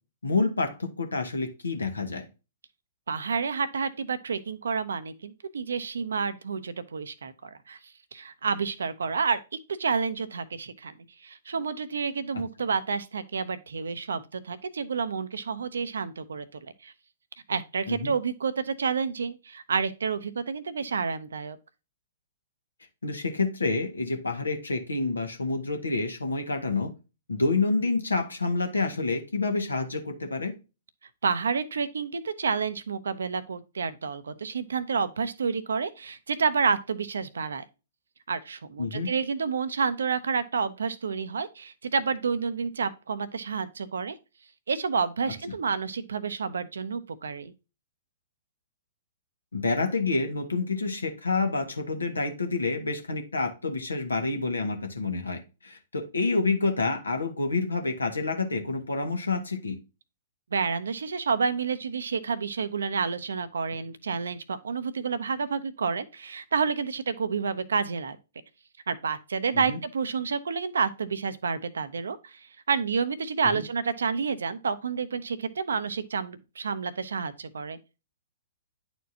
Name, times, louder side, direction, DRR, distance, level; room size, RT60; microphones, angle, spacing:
voice 1, 0.2-2.2 12.3-12.4 17.9-18.1 23.0-26.9 27.3-30.5 38.8-39.1 49.5-59.8 69.5-69.8 73.4-73.6, left 3 dB, 75° left, 1.6 m, -28 dB
voice 2, 3.1-7.8 8.1-9.4 9.8-10.9 11.2-16.4 16.8-16.9 17.5-21.6 31.2-37.6 38.3-44.1 44.7-47.5 60.5-68.2 68.9-72.4 72.7-77.8, right 5 dB, 65° right, 0.7 m, -29 dB
10.0 x 4.4 x 2.8 m
figure-of-eight pair, 115°, 0 cm